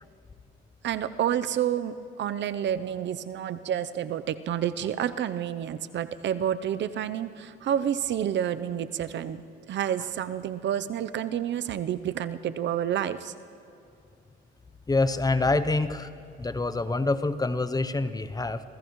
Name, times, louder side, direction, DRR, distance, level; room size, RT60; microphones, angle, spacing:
voice 1, 0.8-13.3, right 10 dB, 65° right, 13 dB, 0.7 m, -29 dB
voice 2, 14.9-16.1 16.4-18.6, left 3 dB, 20° left, 12 dB, 0.7 m, -26 dB
27.5 x 16.5 x 3.1 m, 2.7 s
cardioid pair, 90°, 20 cm